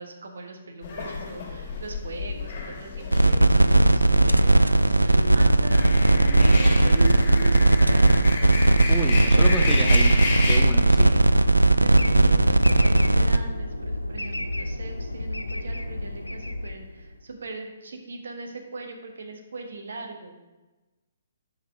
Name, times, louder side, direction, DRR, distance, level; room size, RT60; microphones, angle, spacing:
voice 1, 0.0-8.3 9.3-9.6 11.0-11.3 11.8-20.4, right 3 dB, 60° right, 3 dB, 1.2 m, -40 dB
sound 1, 0.8-10.6, left 2 dB, 35° left, 2.4 m, -32 dB
sound 2, 3.1-13.4, right 1 dB, 85° right, 0.3 m, -18 dB
voice 2, 8.9-10.2 10.5-11.1, equal, 5° left, 1 dB, 0.6 m, -31 dB
sound 3, 11.9-17.3, left 1 dB, 85° left, 0.5 m, -32 dB
5.7 x 4.7 x 5.9 m, 1.1 s
figure-of-eight pair, 125°, 0 cm